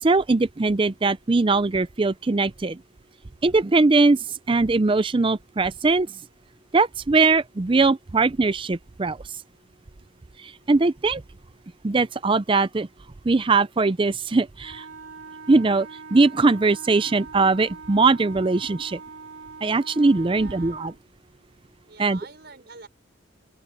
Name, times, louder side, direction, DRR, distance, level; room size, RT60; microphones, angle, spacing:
voice 1, 0.0-2.8 3.4-6.1 6.7-9.2 10.4-11.2 11.8-12.9 13.2-14.8 15.5-19.0 19.6-20.9 22.0-22.2, right 3 dB, 25° right, 0.4 m, -21 dB
Wind instrument woodwind instrument, 14.6-21.0, right 4 dB, 70° right, 5.0 m, -42 dB
voice 2, 20.3-20.8 21.8-22.9, right 4 dB, 50° right, 5.8 m, -45 dB
open air
head